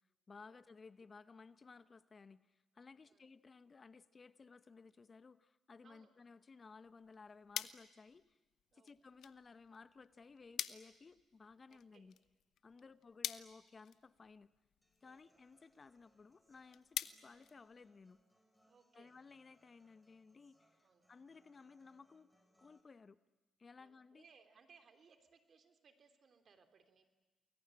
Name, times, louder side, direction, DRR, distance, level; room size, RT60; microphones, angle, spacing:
voice 1, 0.3-8.4 8.7-12.1 12.6-14.5 15.0-18.2 18.9-22.3 22.6-23.2 23.6-24.2, left 4 dB, 40° left, 14 dB, 0.9 m, -58 dB
sound 1, 6.8-18.3, left 10 dB, 65° left, 0.9 m, -49 dB
voice 2, 11.7-12.1 12.7-13.0 15.0-15.3 18.6-19.2 20.8-21.1 23.7-27.0, right 5 dB, 55° right, 8 dB, 3.2 m, -67 dB
Human voice / Acoustic guitar, 14.8-22.8, equal, ahead, 5.7 m, -76 dB
29.0 x 21.5 x 8.9 m, 1.1 s
hypercardioid pair, 50°, 0 cm